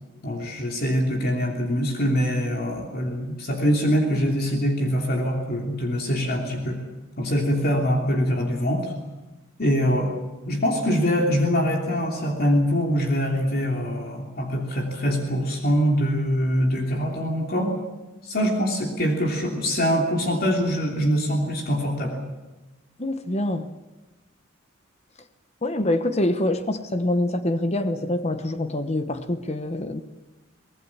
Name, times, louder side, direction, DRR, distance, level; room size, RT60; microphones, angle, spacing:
voice 1, 0.2-6.8 7.2-8.9 9.6-10.1 10.4-17.7 18.2-22.2, equal, 50° left, 1 dB, 3.1 m, -23 dB
voice 2, 23.0-23.7 25.6-30.0, left 1 dB, 30° left, 9 dB, 1.0 m, -25 dB
24.5 x 19.0 x 7.3 m, 1.1 s
head